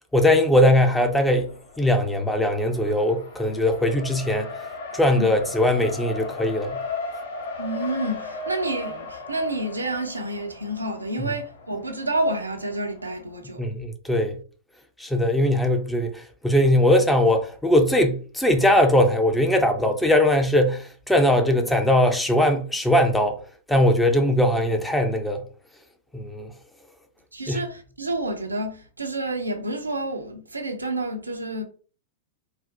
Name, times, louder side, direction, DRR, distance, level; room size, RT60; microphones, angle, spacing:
voice 1, 0.1-1.5 1.8-4.6 4.9-6.8 11.2-11.3 13.6-14.4 15.0-23.4 23.7-25.4 26.1-26.5 27.5-27.6, left 1 dB, 5° left, 0.5 m, -20 dB
Race car auto racing, 0.8-13.4, left 3 dB, 65° left, 0.8 m, -37 dB
voice 2, 7.6-13.6 27.3-31.6, right 1 dB, 85° right, 0.6 m, -29 dB
4.0 x 2.0 x 2.7 m
figure-of-eight pair, 100°, 0 cm